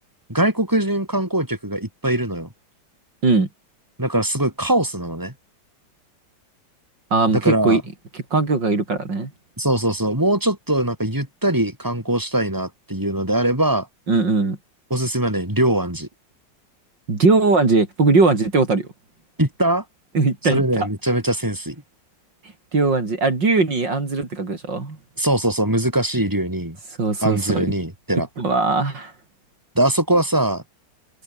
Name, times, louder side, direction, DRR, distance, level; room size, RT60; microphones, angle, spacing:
voice 1, 0.3-2.5 4.0-5.3 7.3-7.8 9.6-13.9 14.9-16.1 19.4-19.8 20.5-21.8 25.2-26.8 27.2-28.3 29.8-30.6, right 1 dB, 10° right, 5.7 m, -21 dB
voice 2, 7.1-7.8 8.3-9.3 14.1-14.6 17.1-18.9 20.1-20.9 22.7-25.0 27.0-27.7 28.4-29.1, right 3 dB, 70° right, 4.8 m, -19 dB
omnidirectional pair, 2.1 m